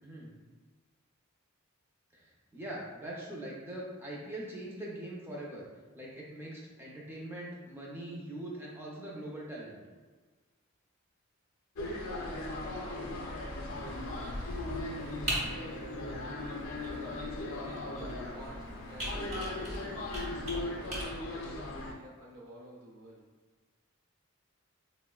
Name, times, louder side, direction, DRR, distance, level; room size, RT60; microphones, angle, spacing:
voice 1, 2.1-5.7 5.9-9.8 18.6-18.7, right 1 dB, 10° right, -4 dB, 0.5 m, -42 dB
sound 1, 11.8-21.9, left 2 dB, 65° left, 0.5 m, -38 dB
Computer keyboard, 13.7-21.0, equal, 35° right, 1.0 m, -41 dB
voice 2, 16.8-20.0 20.5-23.2, right 1 dB, 80° right, -3 dB, 0.6 m, -50 dB
4.0 x 2.0 x 2.2 m, 1.4 s
head